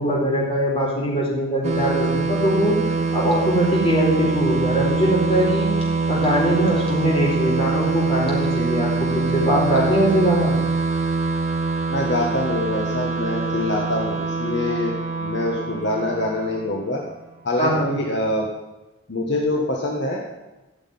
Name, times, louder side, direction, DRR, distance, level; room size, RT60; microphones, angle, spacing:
voice 1, 0.0-2.8 3.1-5.7 6.1-10.6 17.6-18.0, equal, 25° left, -4 dB, 4.4 m, -21 dB
sound 1, 1.6-17.0, right 4 dB, 30° right, 1.7 m, -24 dB
voice 2, 11.9-17.0 17.4-18.5 19.1-20.4, left 1 dB, 55° left, -1 dB, 1.6 m, -25 dB
15.0 x 6.4 x 9.6 m, 1.1 s
head